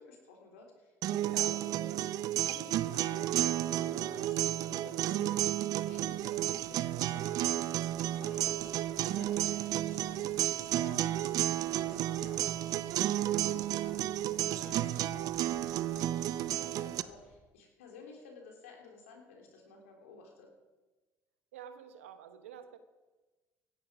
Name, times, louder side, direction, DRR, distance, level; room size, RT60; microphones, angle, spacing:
voice 1, 0.0-2.0 2.4-5.3 5.8-11.3 11.8-12.9 13.3-14.0 14.3-20.5, left 4 dB, 90° left, 1 dB, 3.4 m, -54 dB
sound 1, 1.0-17.0, right 13 dB, 60° right, 0.6 m, -32 dB
voice 2, 1.2-1.5 21.5-22.8, right 9 dB, 90° right, 9 dB, 1.3 m, -47 dB
sound 2, 5.9-17.3, equal, ahead, 6.1 m, -60 dB
17.0 x 13.0 x 5.0 m, 1.2 s
hypercardioid pair, 65°, 7 cm